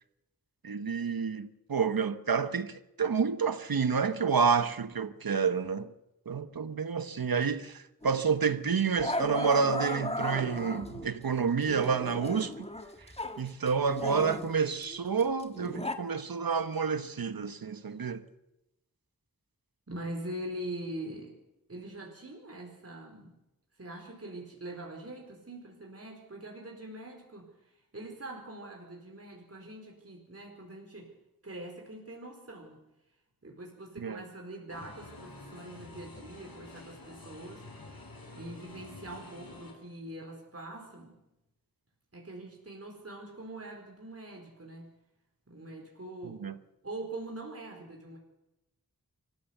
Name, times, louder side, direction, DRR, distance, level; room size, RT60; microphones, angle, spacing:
voice 1, 0.6-5.9 6.3-12.7 13.4-18.2 34.0-34.2 46.2-46.5, right 6 dB, 85° right, 1.3 m, -29 dB
Growling, 8.0-8.2 9.0-11.1 11.6-13.4 13.7-16.0, left 1 dB, 15° left, 1.9 m, -36 dB
voice 2, 19.9-21.3 21.7-23.3 23.8-31.1 31.4-32.8 33.4-37.6 38.3-41.2 42.1-44.9 45.5-46.5 46.8-48.2, right 1 dB, 45° right, 4.5 m, -43 dB
sound 1, 34.7-39.7, left 2 dB, 85° left, 5.4 m, -48 dB
25.5 x 15.0 x 8.1 m
wide cardioid pair, 70°, 35 cm